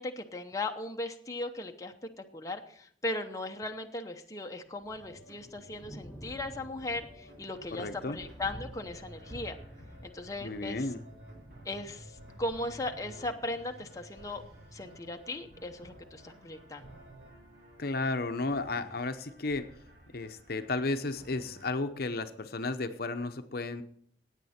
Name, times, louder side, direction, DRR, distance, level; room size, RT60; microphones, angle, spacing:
voice 1, 0.0-9.6 10.0-10.9 11.6-14.4 14.7-16.9, left 2 dB, 20° left, 4 dB, 0.8 m, -38 dB
Thunder, 4.7-22.6, equal, 5° right, 3.1 m, -53 dB
sound 1, 4.9-17.3, right 1 dB, 85° right, 3.6 m, -54 dB
sound 2, 7.5-21.7, right 1 dB, 60° right, 2.7 m, -57 dB
voice 2, 7.7-8.2 10.4-11.0 17.8-19.7 20.1-23.8, left 3 dB, 55° left, 9 dB, 0.8 m, -33 dB
16.0 x 9.1 x 4.3 m, 0.63 s
head